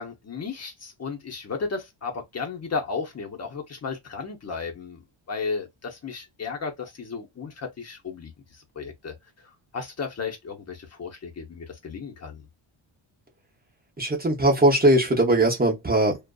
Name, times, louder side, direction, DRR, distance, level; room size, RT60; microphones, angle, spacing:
voice 1, 0.0-5.0 5.3-12.5, left 5 dB, 30° left, 0.9 m, -34 dB
voice 2, 14.0-16.2, right 1 dB, 20° right, 0.7 m, -20 dB
2.5 x 2.4 x 2.2 m
wide cardioid pair, 150°, 48 cm